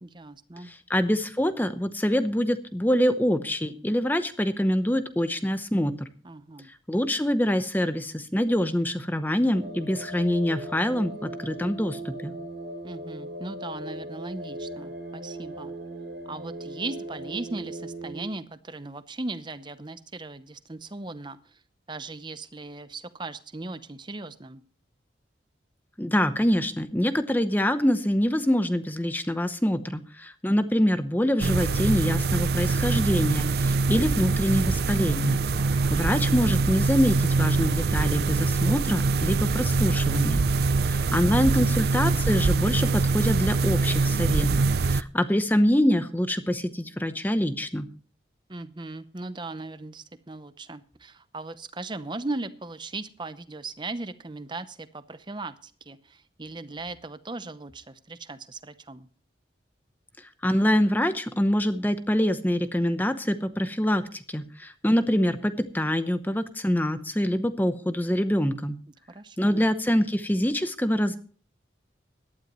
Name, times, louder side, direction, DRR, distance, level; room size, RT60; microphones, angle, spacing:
voice 1, 0.0-0.7 6.2-6.7 12.8-15.7 16.3-21.6 21.9-24.6 35.5-35.9 48.5-59.1 69.1-69.6, right 2 dB, 25° right, 12 dB, 0.7 m, -38 dB
voice 2, 0.6-6.1 6.9-12.3 26.0-35.4 35.7-40.4 40.8-47.9 60.4-68.8 69.4-71.2, equal, 10° left, 10 dB, 0.8 m, -25 dB
sound 1, 9.5-18.3, right 1 dB, 75° right, 2.7 m, -38 dB
sound 2, 31.4-45.0, right 3 dB, 55° right, 0.5 m, -24 dB
17.5 x 12.0 x 3.1 m, 0.42 s
head